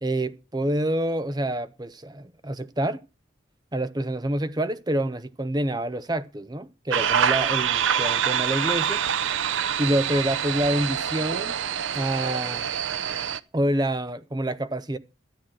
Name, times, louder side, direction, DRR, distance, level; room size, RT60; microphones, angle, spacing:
voice 1, 0.0-3.0 3.7-9.0 9.8-11.6 11.9-12.7 13.5-15.0, right 1 dB, 20° right, 0.7 m, -27 dB
sound 1, 6.9-13.4, right 8 dB, 80° right, 0.6 m, -25 dB
13.0 x 9.3 x 6.2 m
head